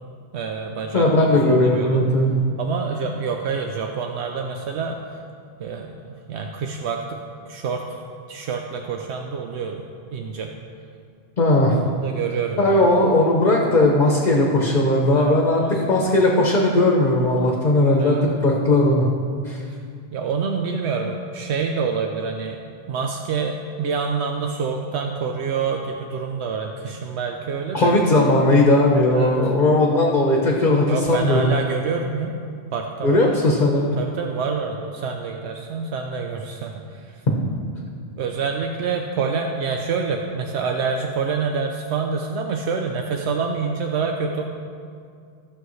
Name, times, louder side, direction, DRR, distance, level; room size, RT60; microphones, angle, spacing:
voice 1, 0.3-2.1 2.6-5.2 5.6-8.0 8.3-10.5 11.8-12.9 15.1-15.8 18.0-18.3 20.1-22.6 22.9-27.9 29.1-29.5 30.9-33.5 34.0-37.2 38.2-44.4, right 5 dB, 80° right, 3 dB, 0.9 m, -27 dB
voice 2, 0.9-2.4 11.4-11.8 12.6-19.1 19.4-19.6 27.7-31.5 33.0-34.0, left 1 dB, 45° left, -1 dB, 1.0 m, -18 dB
15.5 x 6.4 x 3.1 m, 2.3 s
omnidirectional pair, 1.1 m